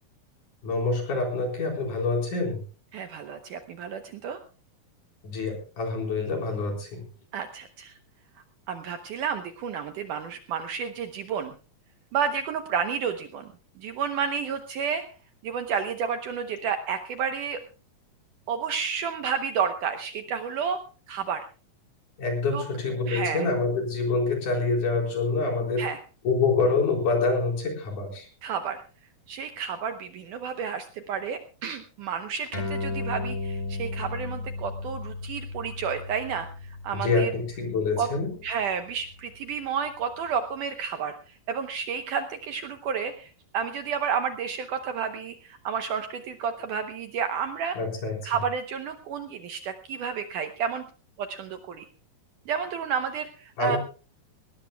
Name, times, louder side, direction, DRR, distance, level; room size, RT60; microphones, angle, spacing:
voice 1, 0.6-2.6 5.2-7.0 22.2-25.8 26.2-28.3 36.9-38.3 47.8-48.1 53.6-53.8, left 3 dB, 50° left, 1 dB, 5.6 m, -26 dB
voice 2, 2.9-4.4 7.3-7.9 8.7-11.5 12.1-13.5 13.8-15.1 15.4-17.6 18.5-20.8 21.1-21.5 22.5-22.6 23.1-23.5 25.8-26.0 28.4-28.8 29.3-37.3 38.0-38.1 38.4-41.2 41.5-47.8 48.2-50.9 51.2-51.9 52.5-53.8, right 7 dB, 70° right, 7 dB, 2.1 m, -31 dB
sound 1, 32.5-39.4, left 3 dB, 10° left, 2.9 m, -35 dB
19.5 x 19.0 x 2.3 m, 0.36 s
omnidirectional pair, 4.5 m